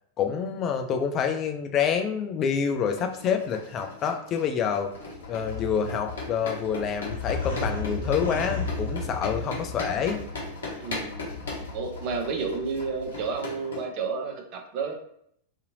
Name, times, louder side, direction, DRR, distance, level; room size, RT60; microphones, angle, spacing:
voice 1, 0.2-4.9 5.3-10.2, left 7 dB, 30° left, 5 dB, 0.3 m, -27 dB
sound 1, 2.9-13.8, left 2 dB, 65° left, 0.8 m, -39 dB
sound 2, 4.9-13.4, left 3 dB, 80° right, 0.8 m, -35 dB
voice 2, 10.8-11.1 11.7-14.9, right 5 dB, 40° right, 3 dB, 0.6 m, -31 dB
2.7 x 2.6 x 2.6 m, 0.70 s
figure-of-eight pair, 90°, 0 cm